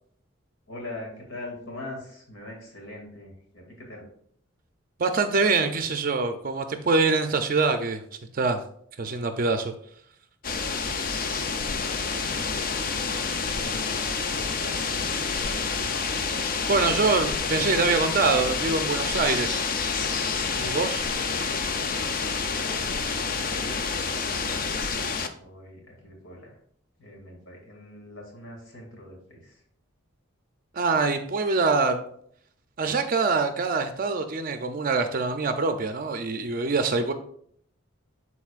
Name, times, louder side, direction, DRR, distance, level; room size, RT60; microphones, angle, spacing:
voice 1, 0.7-4.0 11.2-11.6 12.9-16.2 22.5-24.1 25.4-26.6 27.0-29.6, left 1 dB, 80° left, 0 dB, 2.3 m, -43 dB
voice 2, 5.0-8.0 8.3-8.6 9.0-9.7 16.7-19.6 20.6-21.0 30.7-32.0 32.8-37.1, right 4 dB, 45° right, 7 dB, 0.5 m, -24 dB
sound 1, 10.4-25.3, left 5 dB, 45° left, 0.5 m, -28 dB
11.5 x 4.1 x 2.4 m, 0.65 s
head